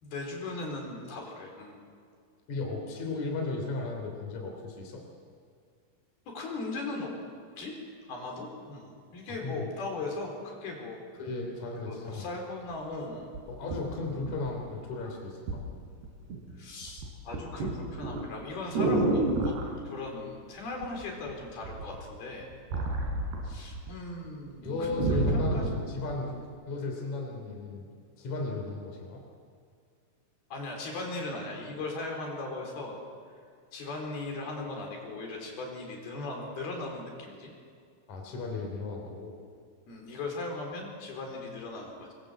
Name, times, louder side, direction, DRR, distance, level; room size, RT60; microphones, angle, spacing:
voice 1, 0.0-1.8 6.3-7.1 7.6-7.8 8.1-11.0 11.8-13.3 16.6-19.5 19.8-22.5 23.4-26.2 30.5-33.0 33.7-37.5 39.9-42.1, left 2 dB, 70° left, 1 dB, 6.1 m, -38 dB
voice 2, 2.5-5.0 9.3-9.7 11.2-12.3 13.5-15.6 23.4-23.5 24.6-26.4 26.7-27.8 28.2-29.2 38.1-39.3, left 3 dB, 45° left, 1 dB, 4.7 m, -35 dB
sound 1, 12.7-12.8 13.3-14.8 15.5-15.7 16.0-16.5 16.8-19.7 20.8-21.3 21.6-23.9 24.2-24.3 24.7-25.8 26.4-26.5, right 2 dB, 90° right, 6.5 m, -30 dB
26.0 x 23.0 x 8.0 m, 2.2 s
omnidirectional pair, 4.7 m